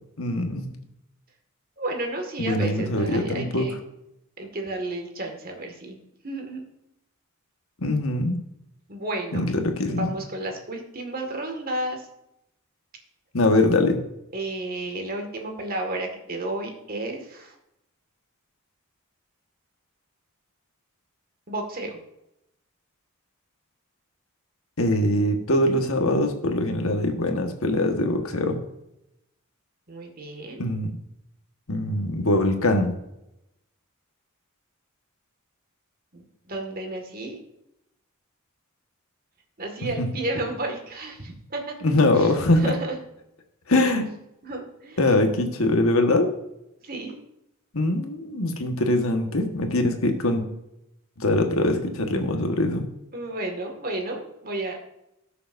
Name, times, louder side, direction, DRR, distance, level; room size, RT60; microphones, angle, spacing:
voice 1, 0.2-0.7 2.4-3.6 7.8-8.4 9.3-10.1 13.3-14.0 24.8-28.6 30.6-30.9 31.7-32.9 40.0-40.1 41.8-42.7 43.7-44.1 45.0-46.3 47.7-50.4 51.2-52.9, left 1 dB, 75° left, 4 dB, 1.4 m, -22 dB
voice 2, 1.8-3.8 4.4-6.0 6.2-6.6 8.9-9.4 9.9-12.1 14.3-17.5 21.5-22.0 29.9-30.6 36.1-37.4 39.6-41.8 42.1-43.0 44.4-45.2 46.8-47.2 53.1-54.8, right 2 dB, 45° right, 3 dB, 1.9 m, -32 dB
18.5 x 6.8 x 2.6 m, 0.85 s
head